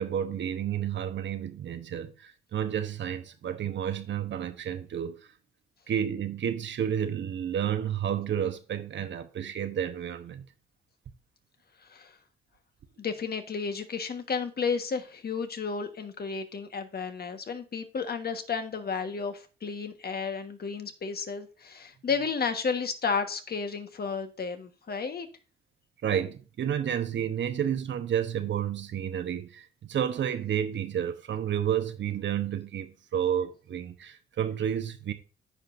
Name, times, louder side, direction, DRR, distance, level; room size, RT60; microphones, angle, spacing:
voice 1, 0.0-5.3 5.9-10.4 24.9-25.0 26.0-35.1, right 9 dB, 60° right, 1.0 m, -31 dB
voice 2, 13.0-25.3, left 5 dB, 50° left, 1.5 m, -32 dB
14.5 x 5.0 x 2.6 m
supercardioid pair, 55°, 21 cm